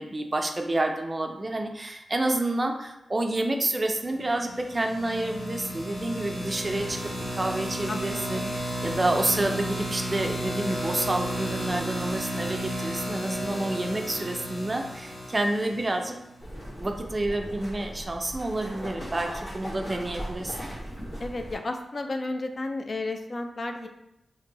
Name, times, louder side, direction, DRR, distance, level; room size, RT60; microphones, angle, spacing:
voice 1, 0.0-7.0 7.3-8.5 8.8-16.2 16.8-20.6, right 2 dB, 30° right, 4 dB, 0.4 m, -29 dB
sound 1, 4.5-16.3, equal, 70° left, 1.1 m, -33 dB
sound 2, 16.4-21.6, equal, 85° left, 1.3 m, -38 dB
voice 2, 21.2-23.9, left 2 dB, 50° left, 5 dB, 0.3 m, -32 dB
2.9 x 2.6 x 2.8 m, 0.86 s
cardioid pair, 65°, 0 cm